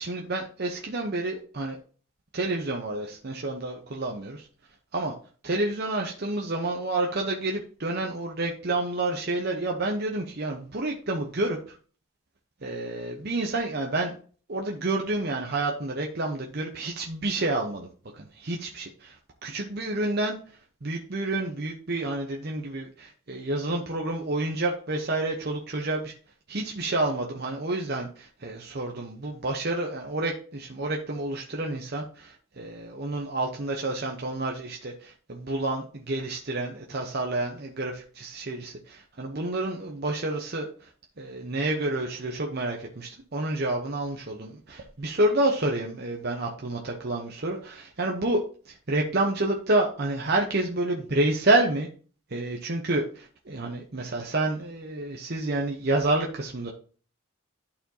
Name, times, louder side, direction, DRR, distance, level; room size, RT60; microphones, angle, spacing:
voice 1, 0.0-1.8 2.3-4.5 4.9-5.1 5.4-11.8 12.6-14.2 14.5-17.9 18.1-19.2 19.4-20.4 20.8-26.1 26.5-40.9 41.2-51.9 52.3-56.7, right 2 dB, 45° right, 1 dB, 0.8 m, -29 dB
11.5 x 4.3 x 2.8 m, 0.41 s
head